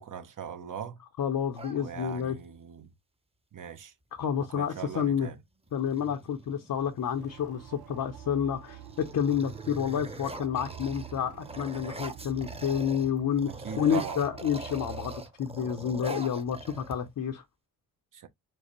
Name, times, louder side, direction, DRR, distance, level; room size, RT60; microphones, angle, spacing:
voice 1, 0.0-1.0 1.8-2.9 3.5-3.9 4.5-5.4 13.6-14.2 18.1-18.3, right 8 dB, 50° right, 1.1 m, -40 dB
voice 2, 1.2-2.4 4.2-5.3 5.7-17.4, left 8 dB, 55° left, 0.8 m, -29 dB
sound 1, 1.5-2.5 4.2-4.3 4.6-5.1 5.7-7.2 7.8-8.2 8.6-13.1 13.4-17.3, right 2 dB, 15° right, 1.0 m, -43 dB
sound 2, 7.2-15.2, right 11 dB, 75° right, 0.7 m, -46 dB
4.6 x 2.1 x 3.1 m
supercardioid pair, 45°, 39 cm